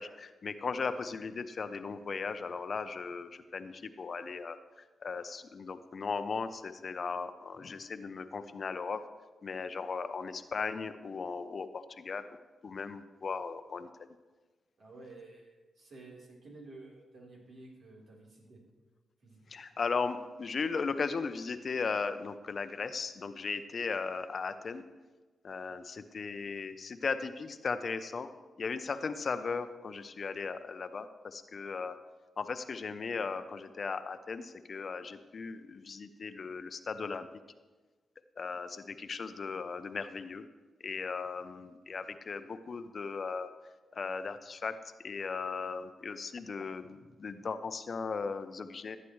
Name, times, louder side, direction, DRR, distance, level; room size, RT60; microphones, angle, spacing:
voice 1, 0.0-4.6 5.0-9.0 9.4-12.4 12.6-13.9 19.5-24.8 25.4-28.3 28.6-32.0 32.4-37.3 38.4-40.5 40.8-43.5 43.9-44.8 45.0-49.0, left 5 dB, 55° left, 10 dB, 0.7 m, -37 dB
voice 2, 14.8-18.6 19.2-19.4, right 2 dB, 70° right, -3 dB, 3.8 m, -52 dB
15.0 x 9.3 x 3.2 m, 1.3 s
cardioid pair, 70°, 0 cm